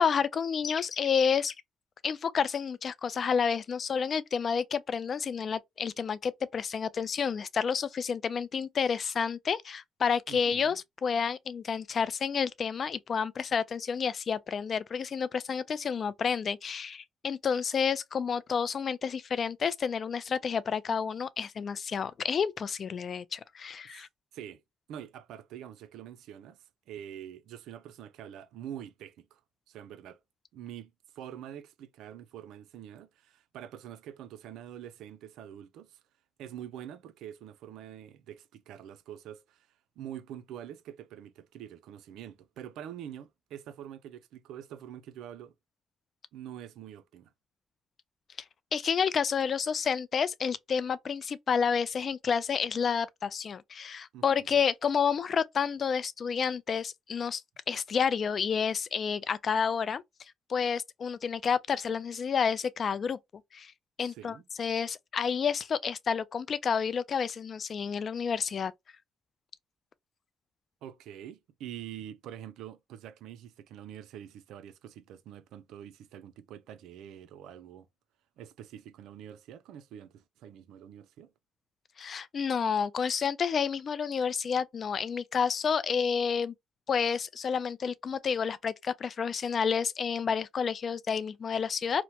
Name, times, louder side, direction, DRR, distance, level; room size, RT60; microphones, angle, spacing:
voice 1, 0.0-1.5 2.0-24.1 48.7-57.4 57.7-60.0 60.5-63.2 63.5-63.7 64.0-68.7 82.0-86.5 86.9-92.0, left 6 dB, 50° left, 0.3 m, -30 dB
voice 2, 10.3-10.8 23.8-24.1 24.3-24.6 24.9-29.4 29.7-30.2 30.5-36.0 36.4-39.7 40.0-45.5 46.3-47.3 54.1-54.6 64.1-64.4 70.8-77.9 78.4-81.3, right 10 dB, 90° right, 0.4 m, -45 dB
2.9 x 2.1 x 2.8 m
cardioid pair, 90°, 0 cm